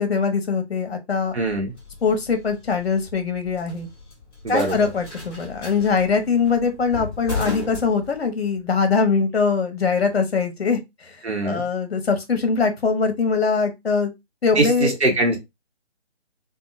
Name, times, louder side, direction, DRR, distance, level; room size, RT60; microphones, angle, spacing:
voice 1, 0.0-1.3 2.0-3.9 4.5-10.8 11.1-11.2 11.4-14.1 14.4-14.9, left 5 dB, 60° left, 0.8 m, -22 dB
sound 1, 1.3-8.6, left 4 dB, 15° left, 1.2 m, -35 dB
voice 2, 1.3-1.7 4.4-4.9 11.2-11.6 14.6-15.4, right 2 dB, 70° right, 1.0 m, -22 dB
2.8 x 2.3 x 2.4 m
figure-of-eight pair, 150°, 34 cm